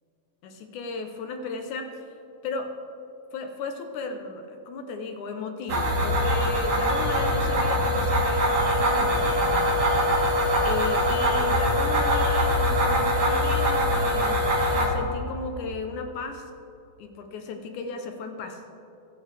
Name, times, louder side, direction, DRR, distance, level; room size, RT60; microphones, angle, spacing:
voice 1, 0.4-2.0 2.4-2.8 3.3-9.4 10.6-16.5 17.0-18.6, left 3 dB, 70° left, 6 dB, 2.0 m, -35 dB
sound 1, 5.7-14.9, equal, 55° right, 3.4 m, -23 dB
25.5 x 9.3 x 3.4 m, 2.8 s
omnidirectional pair, 4.3 m